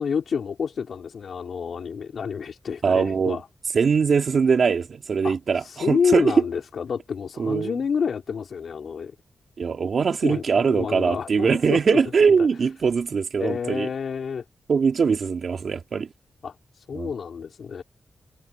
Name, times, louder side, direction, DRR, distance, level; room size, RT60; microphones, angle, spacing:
voice 1, 0.0-3.4 5.2-9.1 10.2-12.0 12.3-12.4 13.4-14.4 16.4-17.8, left 6 dB, 70° left, 4.8 m, -29 dB
voice 2, 2.8-3.4 3.7-6.3 7.4-7.7 9.6-13.9 14.7-16.1 16.9-17.1, right 5 dB, 65° right, 2.8 m, -22 dB
cardioid pair, 80°, 0 cm